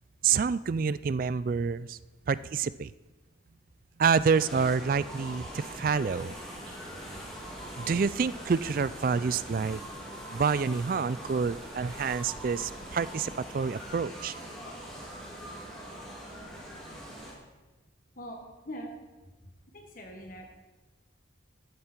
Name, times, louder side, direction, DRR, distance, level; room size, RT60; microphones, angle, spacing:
voice 1, 0.2-2.0 2.3-2.9 4.0-6.4 7.8-9.8 10.3-14.3, right 5 dB, 45° right, 17 dB, 0.3 m, -28 dB
sound 1, 4.3-17.3, equal, 5° left, 2.8 m, -42 dB
sound 2, 5.0-13.1, right 1 dB, 80° right, 4.9 m, -57 dB
voice 2, 18.1-18.9 19.7-20.5, equal, 45° left, 1 dB, 1.7 m, -42 dB
14.0 x 11.0 x 4.5 m, 1.1 s
head